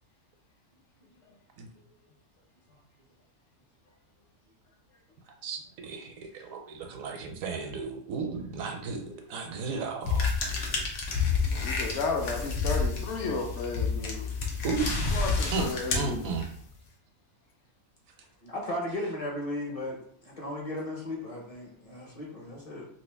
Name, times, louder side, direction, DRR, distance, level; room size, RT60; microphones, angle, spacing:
voice 1, 5.4-10.3 14.6-14.9 15.5-16.5, right 4 dB, 75° right, 3 dB, 1.0 m, -34 dB
sound 1, 10.0-16.7, left 4 dB, 85° left, 1.2 m, -29 dB
voice 2, 11.5-14.3 15.1-16.3, left 3 dB, 60° left, 2 dB, 1.0 m, -33 dB
voice 3, 18.4-20.0 20.2-22.9, left 1 dB, 35° left, -2 dB, 0.6 m, -36 dB
3.0 x 2.7 x 3.3 m, 0.63 s
omnidirectional pair, 1.5 m